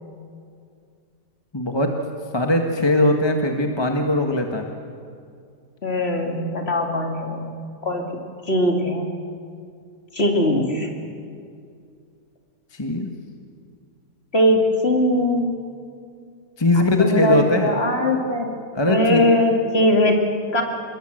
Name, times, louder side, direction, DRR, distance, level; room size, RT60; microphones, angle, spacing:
voice 1, 1.5-1.9 2.3-4.7 12.7-13.1 16.6-17.7 18.7-19.2, left 1 dB, 15° left, 3 dB, 1.4 m, -20 dB
voice 2, 5.8-7.5 7.8-8.1 8.5-9.0 10.1-10.9 14.3-15.5 16.7-18.5 18.9-20.6, left 1 dB, 35° left, 2 dB, 2.8 m, -20 dB
25.5 x 21.5 x 7.8 m, 2.3 s
omnidirectional pair, 1.9 m